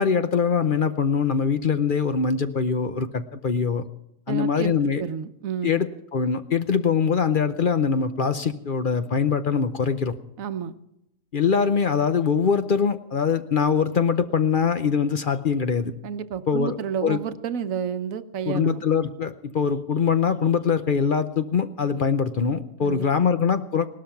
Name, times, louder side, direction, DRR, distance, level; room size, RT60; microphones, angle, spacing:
voice 1, 0.0-3.8 4.3-5.0 5.6-10.1 11.3-15.9 16.5-16.8 17.0-17.2 18.5-23.9, left 6 dB, 45° left, 10 dB, 0.8 m, -23 dB
voice 2, 4.3-5.8 10.4-10.8 16.0-18.8 22.8-23.3, right 7 dB, 85° right, 11 dB, 1.2 m, -31 dB
18.0 x 12.5 x 5.8 m, 0.83 s
omnidirectional pair, 1.4 m